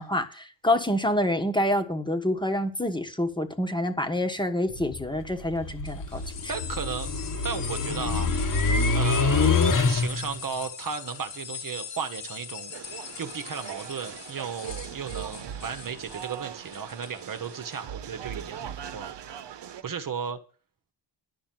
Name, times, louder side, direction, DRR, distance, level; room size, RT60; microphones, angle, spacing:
voice 1, 0.0-6.5, left 1 dB, 10° left, 5 dB, 1.3 m, -27 dB
sound 1, 4.7-10.4, left 4 dB, 45° left, 1.5 m, -26 dB
sound 2, 5.8-17.8, left 7 dB, 75° left, 2.9 m, -41 dB
voice 2, 6.1-8.3 8.9-9.5 9.9-12.8 13.2-19.1 19.8-20.4, right 6 dB, 45° right, 8 dB, 1.2 m, -35 dB
sound 3, 12.7-19.8, right 9 dB, 70° right, 1.1 m, -40 dB
11.5 x 6.1 x 9.2 m, 0.37 s
wide cardioid pair, 170°, 44 cm